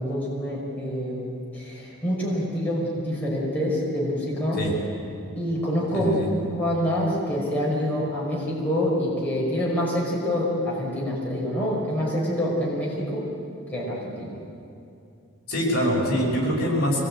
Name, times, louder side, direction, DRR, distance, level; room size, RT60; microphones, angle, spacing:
voice 1, 0.0-4.6 5.4-6.2 6.5-13.3 13.7-14.3, equal, 5° left, -6 dB, 5.6 m, -26 dB
voice 2, 5.9-6.3 15.5-17.0, equal, 45° left, -3 dB, 6.2 m, -24 dB
24.5 x 20.5 x 8.9 m, 2.6 s
head